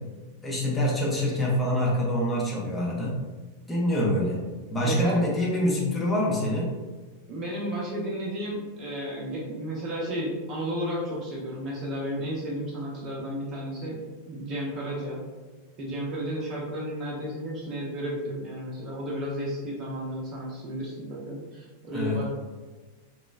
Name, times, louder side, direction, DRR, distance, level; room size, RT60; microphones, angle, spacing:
voice 1, 0.4-3.1 3.7-4.4 4.7-6.7 21.9-22.2, left 1 dB, 10° left, -5 dB, 0.6 m, -25 dB
voice 2, 4.8-5.3 7.3-14.0 14.3-15.2 15.8-22.2, equal, 35° right, -3 dB, 0.6 m, -33 dB
3.0 x 2.1 x 2.3 m, 1.3 s
figure-of-eight pair, 90°, 0 cm